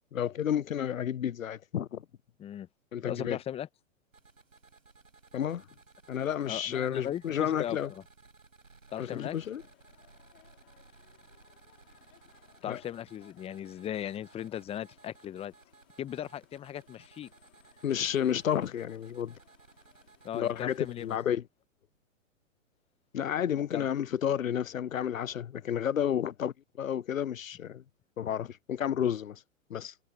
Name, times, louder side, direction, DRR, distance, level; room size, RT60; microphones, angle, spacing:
voice 1, 0.1-2.0 2.9-3.4 5.3-5.6 6.1-7.9 9.0-9.6 12.7-12.8 17.8-19.3 20.3-21.4 23.1-27.8 28.2-29.4 29.7-29.9, left 9 dB, 85° left, 0.7 m, -31 dB
voice 2, 3.1-3.7 6.5-8.0 8.9-9.4 12.6-15.5 16.0-17.3 20.2-21.2 23.7-23.9, left 11 dB, 15° left, 0.8 m, -38 dB
sound 1, 4.1-21.2, right 4 dB, 90° right, 5.2 m, -59 dB
sound 2, 8.9-20.4, left 28 dB, 45° left, 5.0 m, -65 dB
figure-of-eight pair, 110°, 39 cm